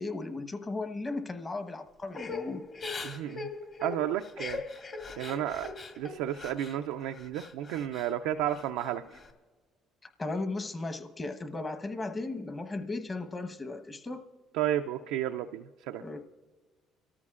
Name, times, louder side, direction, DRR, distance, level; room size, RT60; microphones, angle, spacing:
voice 1, 0.0-2.6 10.0-14.2 16.0-16.2, left 2 dB, 30° left, 8 dB, 1.1 m, -36 dB
Crying sobbing / Breathing, 2.1-6.8 7.1-8.1 8.5-9.3, left 4 dB, 50° left, 1.9 m, -40 dB
voice 2, 3.0-3.5 3.8-4.6 5.2-5.7 6.0-9.2 14.6-16.0, right 11 dB, 90° right, 6 dB, 0.3 m, -32 dB
24.5 x 13.5 x 2.4 m, 1.5 s
supercardioid pair, 85°, 0 cm